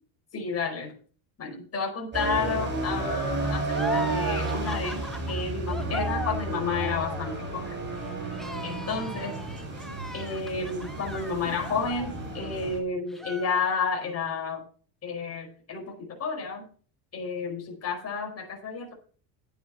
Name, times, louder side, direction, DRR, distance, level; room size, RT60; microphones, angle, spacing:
voice 1, 0.3-0.9 1.4-5.0 5.3-7.8 8.6-9.3 10.1-14.6 15.0-16.6 17.1-18.9, left 4 dB, 30° left, 1 dB, 4.9 m, -31 dB
sound 1, 2.1-12.8, right 2 dB, 20° right, 6.1 m, -32 dB
sound 2, 3.7-12.7 13.1-14.1, equal, ahead, 0.9 m, -40 dB
10.5 x 9.2 x 5.5 m, 0.42 s
cardioid pair, 130°, 48 cm